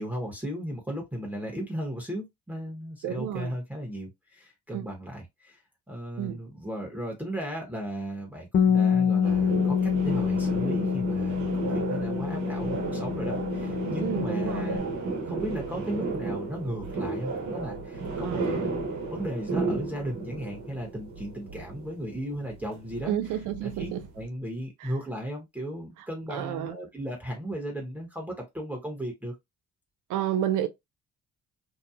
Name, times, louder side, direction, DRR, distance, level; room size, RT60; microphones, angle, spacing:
voice 1, 0.0-5.6 5.9-23.2 23.6-29.3, equal, 5° right, 1.1 m, -36 dB
voice 2, 3.0-3.5 4.7-4.9 6.2-6.4 14.0-14.8 18.2-18.6 23.1-24.0 24.8-24.9 26.3-26.8 30.1-30.7, right 11 dB, 85° right, 0.6 m, -30 dB
Bass guitar, 8.5-14.8, left 7 dB, 40° left, 0.4 m, -26 dB
sound 1, 9.2-24.3, right 3 dB, 65° right, 1.0 m, -33 dB
2.8 x 2.3 x 2.3 m
cardioid pair, 90°, 30 cm